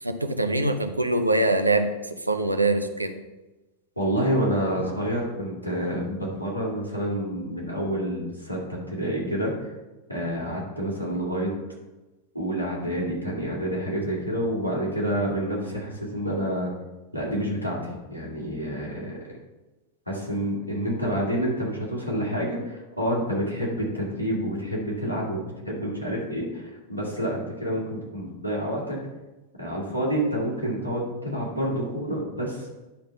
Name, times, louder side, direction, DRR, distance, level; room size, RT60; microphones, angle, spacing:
voice 1, 0.0-3.2, right 2 dB, 85° right, 7 dB, 0.6 m, -24 dB
voice 2, 4.0-9.7 10.1-11.5 12.3-16.7 17.1-19.1 20.1-29.0 29.6-32.7, equal, 85° left, -3 dB, 2.3 m, -28 dB
10.0 x 3.8 x 5.6 m, 1.1 s
figure-of-eight pair, 90°, 0 cm